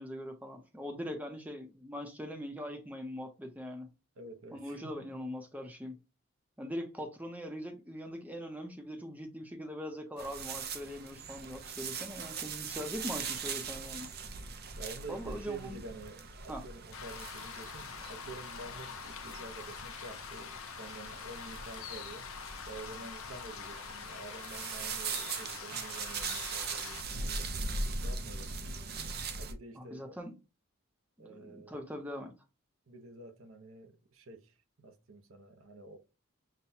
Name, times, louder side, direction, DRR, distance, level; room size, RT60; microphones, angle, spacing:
voice 1, 0.0-3.9 4.5-6.0 6.6-14.1 15.1-15.8 16.5-16.6 29.7-30.3 31.2-32.3, equal, 5° right, 0.6 m, -41 dB
voice 2, 4.2-5.0 14.8-22.2 22.7-27.5 28.0-28.6 29.4-30.2 31.2-31.8 32.9-36.0, right 3 dB, 75° right, 0.8 m, -48 dB
sound 1, 10.2-29.5, right 4 dB, 45° right, 0.5 m, -41 dB
sound 2, 16.9-27.0, left 7 dB, 75° left, 0.5 m, -45 dB
5.8 x 2.2 x 2.7 m
head